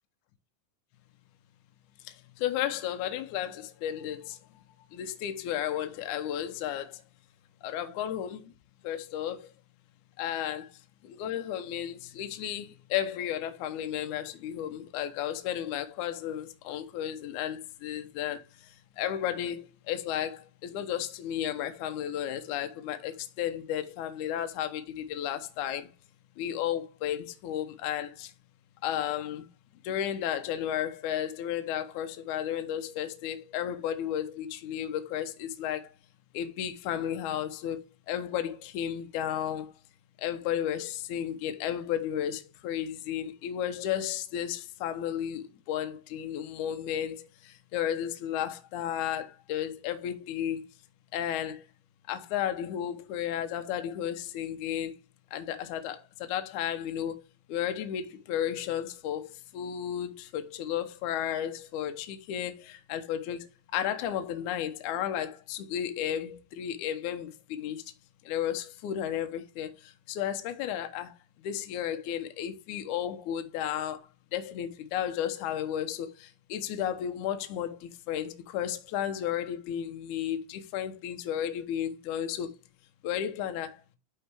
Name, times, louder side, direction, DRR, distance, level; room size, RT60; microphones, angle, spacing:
voice 1, 2.0-4.6 4.9-7.0 7.6-8.5 8.8-9.5 10.2-25.9 26.4-28.3 28.8-29.5 29.8-35.9 36.3-39.7 40.2-50.6 51.1-51.7 52.1-54.9 55.3-57.2 57.5-67.8 68.2-82.6 83.0-83.8, left 10 dB, 75° left, 1.8 m, -33 dB
11.5 x 4.2 x 3.4 m
omnidirectional pair, 4.6 m